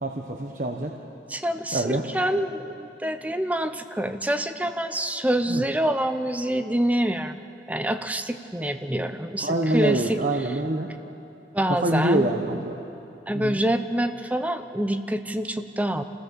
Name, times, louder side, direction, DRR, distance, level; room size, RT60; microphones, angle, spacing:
voice 1, 0.0-0.9 1.7-2.0 5.5-5.6 9.4-10.9 11.7-12.8 13.3-13.6, right 1 dB, 45° right, 2 dB, 1.1 m, -25 dB
voice 2, 1.3-7.4 7.7-10.2 11.5-12.3 13.3-16.0, right 1 dB, 10° right, 8 dB, 0.8 m, -26 dB
27.0 x 16.0 x 7.1 m, 2.8 s
head